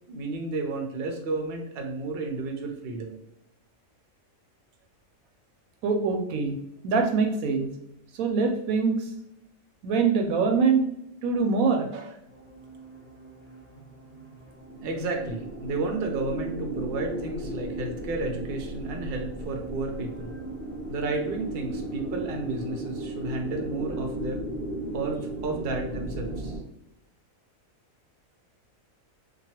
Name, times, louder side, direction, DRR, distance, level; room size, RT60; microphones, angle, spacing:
voice 1, 0.1-3.2 14.8-20.3 20.9-24.4 24.9-26.5, right 3 dB, 60° right, 3 dB, 0.6 m, -32 dB
voice 2, 5.8-6.6 6.8-7.7 8.2-9.1 9.8-10.9 11.2-12.1, right 4 dB, 85° right, 4 dB, 1.0 m, -24 dB
sound 1, 12.3-26.6, right 1 dB, 60° left, 1.0 m, -36 dB
3.0 x 2.3 x 2.7 m, 0.79 s
omnidirectional pair, 1.4 m